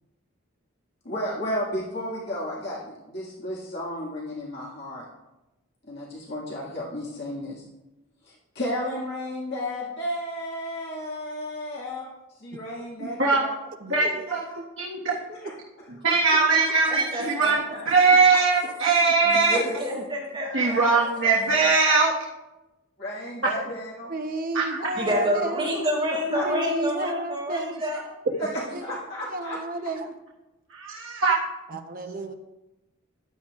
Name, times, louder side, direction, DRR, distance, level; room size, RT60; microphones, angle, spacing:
voice 1, 1.0-5.0 5.9-7.6 8.2-12.1 12.4-13.5 13.9-14.6 15.4-15.9 19.5-19.8 20.4-21.0 21.6-21.7 23.0-24.1 26.3-26.4 28.4-29.6, left 1 dB, 55° left, -5 dB, 1.9 m, -33 dB
voice 2, 13.0-13.4 13.8-14.0 14.3-14.4 14.8-15.1 15.9-17.6 17.9-19.6 20.5-22.1 24.5-24.6 30.7-31.3, right 4 dB, 70° right, -5 dB, 1.5 m, -21 dB
voice 3, 16.9-17.8 18.6-18.7 19.2-21.3 24.9-28.0 28.4-28.8, equal, 25° right, -4 dB, 4.3 m, -29 dB
voice 4, 24.1-25.7 26.3-27.8 28.7-28.8 29.3-30.1 31.7-32.3, right 2 dB, 40° right, 6 dB, 0.8 m, -31 dB
14.0 x 11.0 x 2.4 m, 1.0 s
head